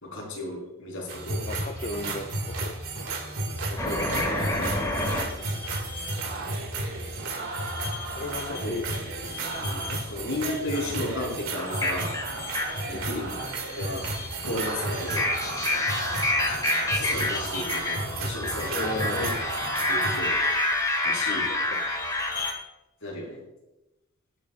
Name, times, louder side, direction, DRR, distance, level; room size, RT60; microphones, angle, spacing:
voice 1, 0.0-1.4 4.1-4.3 8.6-8.8 9.6-12.2 12.9-13.3 13.7-14.0 14.4-15.3 16.9-19.3 19.9-20.3 21.0-21.5 23.0-23.4, left 1 dB, 60° left, -2 dB, 4.3 m, -34 dB
sound 1, 1.1-20.2, right 2 dB, 65° right, 2.2 m, -33 dB
voice 2, 1.4-2.8 3.7-4.7 8.2-8.9 9.9-10.0 10.9-11.0 12.9-13.1 18.7-19.4 21.5-21.9, left 2 dB, 35° left, 3 dB, 0.6 m, -36 dB
sound 2, 3.8-6.1 7.7-9.0 9.3-10.1 10.6-22.5, left 2 dB, 15° left, 1.7 m, -29 dB
20.0 x 8.4 x 2.5 m, 0.97 s
head